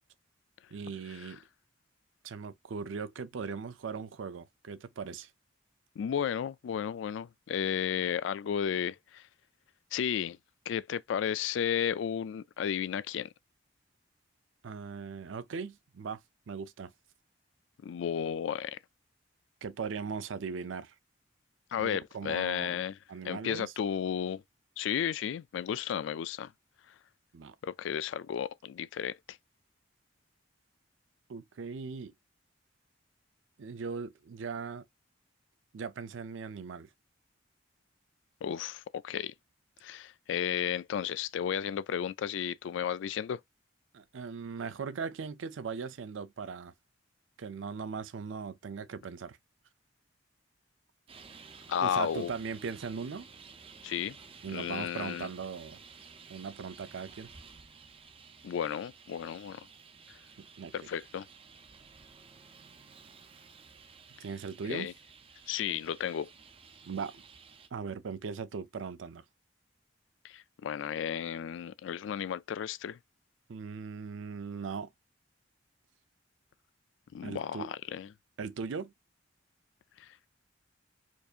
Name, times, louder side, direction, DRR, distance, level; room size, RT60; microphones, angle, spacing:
voice 1, 0.7-1.4 2.2-5.3 14.6-16.2 16.5-16.9 19.6-20.9 21.8-22.8 23.1-23.7 27.3-27.6 31.3-32.1 33.6-34.8 35.7-36.9 43.9-46.7 47.4-49.4 51.8-53.3 54.4-55.8 56.3-57.3 60.4-60.7 64.2-64.9 66.8-67.2 67.7-69.2 73.5-74.9 77.2-77.7 78.4-78.9, right 5 dB, 85° right, 0.5 m, -39 dB
voice 2, 6.0-9.3 9.9-10.4 10.7-13.3 17.8-18.8 21.7-23.0 23.2-24.4 24.8-26.5 26.9-27.0 27.6-29.4 38.4-39.3 39.8-43.4 51.7-52.3 53.8-54.2 54.5-55.3 58.4-59.7 60.1-60.2 60.7-61.3 64.7-64.9 65.5-66.3 70.2-73.0 77.1-78.1 80.0-80.2, left 8 dB, 75° left, 0.3 m, -33 dB
Traffic noise roadway noise, 51.1-67.7, right 5 dB, 30° right, 0.5 m, -54 dB
4.5 x 2.8 x 2.4 m
head